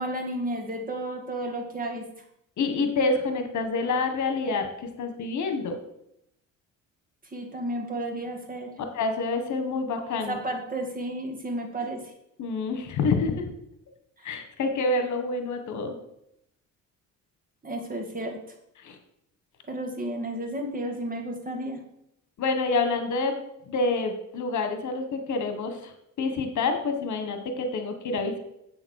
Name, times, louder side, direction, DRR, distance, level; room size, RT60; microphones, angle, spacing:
voice 1, 0.0-2.0 7.3-8.7 10.1-12.1 14.2-14.3 17.6-18.4 19.7-21.8, right 1 dB, 25° right, 3 dB, 2.3 m, -32 dB
voice 2, 2.6-5.8 8.9-10.4 12.4-13.4 14.2-15.9 18.8-19.0 22.4-23.4 23.7-25.9 26.2-28.4, left 3 dB, 65° left, 7 dB, 1.7 m, -27 dB
7.9 x 7.2 x 6.5 m, 0.79 s
cardioid pair, 120°, 32 cm